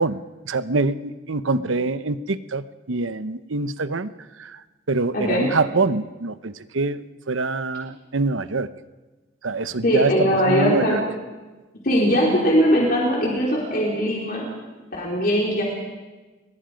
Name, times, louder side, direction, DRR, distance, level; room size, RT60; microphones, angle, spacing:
voice 1, 0.0-4.1 4.4-4.6 4.9-8.7 9.4-11.0, right 3 dB, 85° right, 13 dB, 0.9 m, -25 dB
voice 2, 5.1-5.5 9.8-11.0 11.8-14.4 14.9-15.6, equal, 50° left, -3 dB, 4.3 m, -20 dB
29.5 x 22.0 x 5.2 m, 1.2 s
head